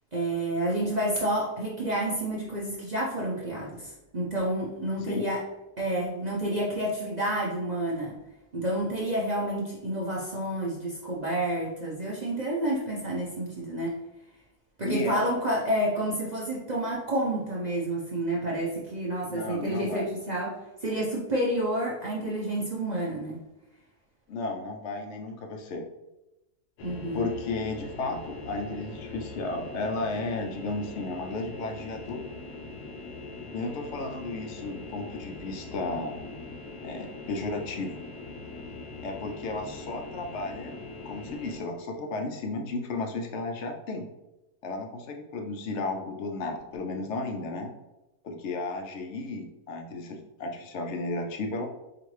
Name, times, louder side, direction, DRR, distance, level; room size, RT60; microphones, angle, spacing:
voice 1, 0.1-5.4 5.8-8.1 8.5-14.0 14.8-23.4 26.8-27.3, right 1 dB, 45° right, -6 dB, 0.5 m, -29 dB
voice 2, 14.8-15.2 19.3-20.1 24.3-25.9 27.1-32.2 33.5-36.3 36.8-38.0 39.0-40.8 41.0-44.1 44.6-47.7 48.2-51.7, left 3 dB, 65° left, 3 dB, 0.7 m, -34 dB
sound 1, 26.8-41.6, left 3 dB, 80° left, 1.2 m, -42 dB
4.7 x 2.5 x 3.1 m, 0.98 s
omnidirectional pair, 1.7 m